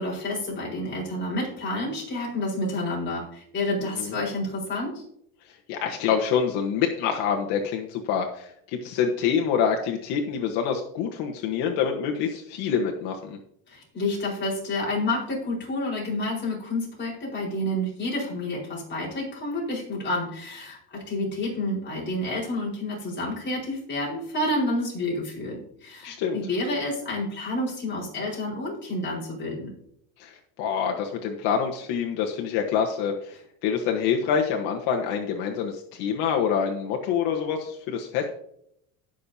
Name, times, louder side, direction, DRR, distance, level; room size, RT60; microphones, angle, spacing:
voice 1, 0.0-5.0 13.7-29.7, left 1 dB, 25° left, -5 dB, 4.8 m, -29 dB
voice 2, 5.5-13.4 26.0-26.4 30.2-38.3, left 7 dB, 70° left, 2 dB, 1.4 m, -26 dB
18.5 x 6.6 x 2.8 m, 0.72 s
cardioid pair, 135°, 41 cm